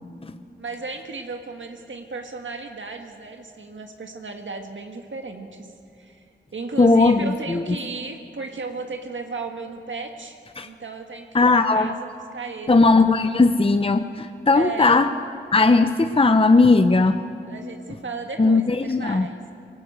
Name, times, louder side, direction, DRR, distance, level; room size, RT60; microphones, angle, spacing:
voice 1, 0.6-5.7 6.0-6.2 6.5-12.1 12.3-12.8 14.5-15.1 17.4-19.4, right 3 dB, 80° right, 4 dB, 1.7 m, -35 dB
voice 2, 6.8-7.6 10.6-10.7 11.3-11.9 12.7-15.1 15.5-17.2 18.4-19.3, left 3 dB, 30° left, 9 dB, 0.7 m, -17 dB
23.5 x 18.5 x 8.1 m, 2.5 s
wide cardioid pair, 75°, 19 cm